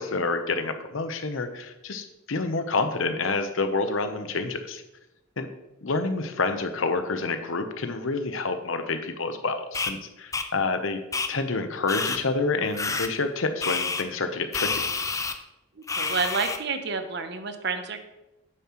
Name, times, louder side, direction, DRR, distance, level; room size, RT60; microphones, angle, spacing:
voice 1, 0.0-4.8 5.4-5.5 5.8-11.0 11.3-14.9, left 3 dB, 80° left, 8 dB, 0.8 m, -28 dB
sound 1, 9.7-9.9 10.3-10.5 11.1-11.3 11.9-12.2 12.8-13.1 13.6-14.0 14.5-15.3 15.9-16.6, left 4 dB, 15° left, 0.4 m, -28 dB
voice 2, 15.8-18.0, right 4 dB, 55° right, 8 dB, 0.8 m, -29 dB
9.1 x 7.4 x 3.0 m, 0.94 s
head